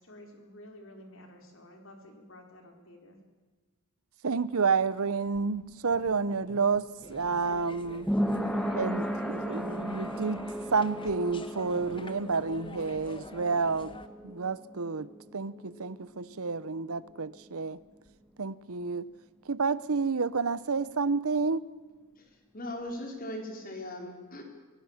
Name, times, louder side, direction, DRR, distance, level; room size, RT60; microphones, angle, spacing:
voice 1, 0.0-3.2, left 1 dB, 65° left, 4.3 m, -51 dB
voice 2, 4.2-8.1 8.8-10.4 10.7-14.0 14.2-15.1 15.3-17.8 18.4-19.0 19.5-21.6, right 4 dB, 80° right, 0.8 m, -30 dB
sound 1, 5.0-16.5 16.8-16.9, equal, 5° left, 1.6 m, -36 dB
sound 2, 7.0-14.1, left 2 dB, 25° left, 1.3 m, -47 dB
voice 3, 22.5-24.4, left 1 dB, 40° left, 4.4 m, -39 dB
25.0 x 18.0 x 7.3 m
head